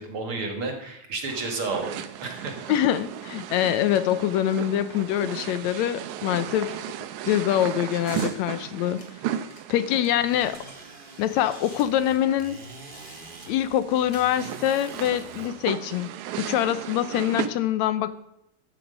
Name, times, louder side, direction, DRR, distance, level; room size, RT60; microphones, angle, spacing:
voice 1, 0.0-2.5, right 3 dB, 50° right, 4 dB, 2.6 m, -31 dB
sound 1, 1.3-17.5, right 11 dB, 80° right, 2.2 m, -36 dB
voice 2, 2.7-6.8 7.3-9.0 9.7-10.6 11.2-12.6 13.5-16.1 16.4-18.1, left 11 dB, 80° left, 14 dB, 1.9 m, -24 dB
sound 2, 8.0-8.4 9.0-10.8 11.0-11.1 11.3-13.5 14.1-14.4 14.9-15.7, left 3 dB, 35° left, 2.8 m, -48 dB
sound 3, 10.2-15.5, right 2 dB, 30° right, 0.9 m, -46 dB
14.0 x 9.5 x 5.2 m, 0.81 s
omnidirectional pair, 3.3 m